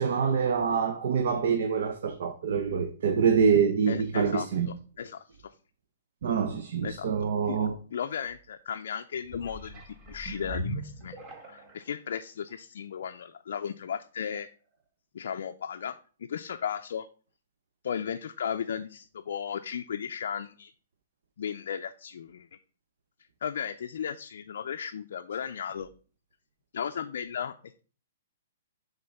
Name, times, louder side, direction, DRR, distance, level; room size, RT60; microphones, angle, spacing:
voice 1, 0.0-4.7 6.2-7.8, right 6 dB, 60° right, 0.7 m, -26 dB
voice 2, 3.9-4.5 5.0-5.5 6.8-7.1 7.5-7.6 7.9-11.2 11.5-14.5 15.1-17.1 17.8-20.7 21.4-22.5 23.4-25.9 26.7-27.8, left 8 dB, 70° left, 0.4 m, -35 dB
sound 1, 9.2-11.9 12.5-12.6, right 1 dB, 20° right, 0.9 m, -39 dB
5.6 x 3.7 x 5.3 m
hypercardioid pair, 165°, 0 cm